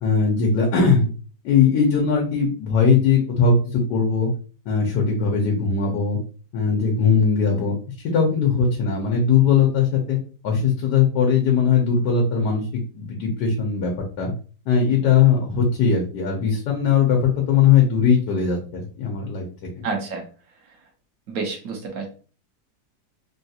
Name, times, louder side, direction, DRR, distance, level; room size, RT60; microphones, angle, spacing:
voice 1, 0.0-1.1 1.4-4.3 4.7-6.2 6.5-7.7 8.1-10.2 10.4-13.9 14.2-14.3 14.7-19.4 19.8-19.9, left 6 dB, 80° left, 0 dB, 1.4 m, -19 dB
voice 2, 19.8-20.2 21.3-22.1, right 4 dB, 65° right, 2 dB, 1.1 m, -28 dB
3.6 x 2.4 x 2.7 m, 0.38 s
omnidirectional pair, 1.8 m